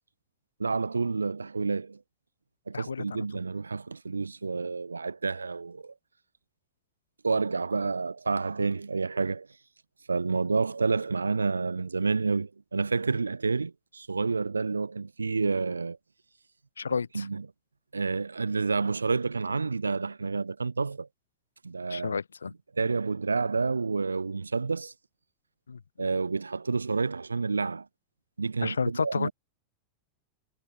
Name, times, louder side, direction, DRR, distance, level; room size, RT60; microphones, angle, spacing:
voice 1, 0.6-2.0 2.7-5.9 7.2-9.5 10.1-16.0 17.1-17.5 17.9-21.1 21.6-22.2 22.7-24.9 26.0-27.9 28.4-29.3, right 4 dB, 75° right, 6.6 m, -29 dB
voice 2, 2.7-3.2 16.8-17.3 21.9-22.5 25.7-25.8 28.6-29.3, left 5 dB, 75° left, 1.2 m, -31 dB
figure-of-eight pair, 90°, 0 cm